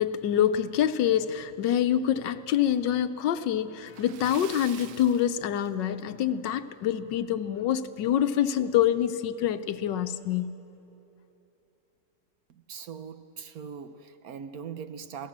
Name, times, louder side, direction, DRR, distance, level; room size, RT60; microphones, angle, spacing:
voice 1, 0.0-10.5, left 10 dB, 85° left, 1.4 m, -26 dB
Splash splatter, 3.8-6.2 6.5-6.7 7.1-7.2 8.7-8.8 9.1-9.2 9.8-10.1, right 9 dB, 85° right, 1.5 m, -46 dB
voice 2, 12.5-15.3, right 7 dB, 65° right, 1.1 m, -41 dB
28.0 x 17.0 x 7.4 m
omnidirectional pair, 1.9 m